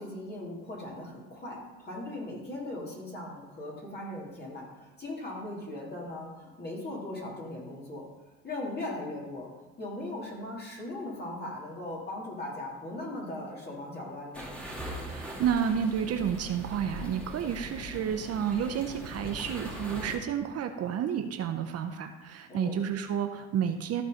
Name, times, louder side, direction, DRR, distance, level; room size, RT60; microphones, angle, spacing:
voice 1, 0.0-8.0 8.4-9.5 9.8-14.5 22.5-22.8, left 1 dB, 30° left, -4 dB, 3.2 m, -39 dB
sound 1, 14.3-20.2, equal, 5° left, 2.5 m, -41 dB
voice 2, 15.1-24.0, right 8 dB, 45° right, 7 dB, 0.8 m, -31 dB
14.0 x 4.7 x 5.2 m, 1.1 s
supercardioid pair, 95°, 34 cm